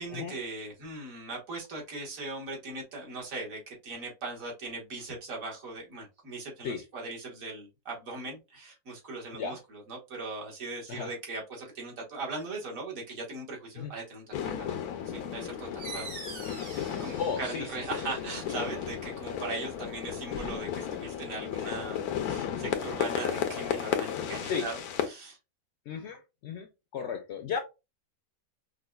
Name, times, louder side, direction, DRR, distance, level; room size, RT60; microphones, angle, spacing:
voice 1, 0.0-9.6 9.9-14.8 15.1-16.1 17.0-24.8 25.0-25.4, right 3 dB, 65° right, 1.7 m, -39 dB
sound 1, 14.3-25.1, left 9 dB, 85° left, 1.1 m, -34 dB
sound 2, 15.8-21.1, right 4 dB, 50° right, 1.4 m, -47 dB
voice 2, 17.2-17.8 24.5-24.7 25.9-27.6, left 6 dB, 65° left, 0.7 m, -34 dB
5.0 x 2.2 x 2.2 m
omnidirectional pair, 1.5 m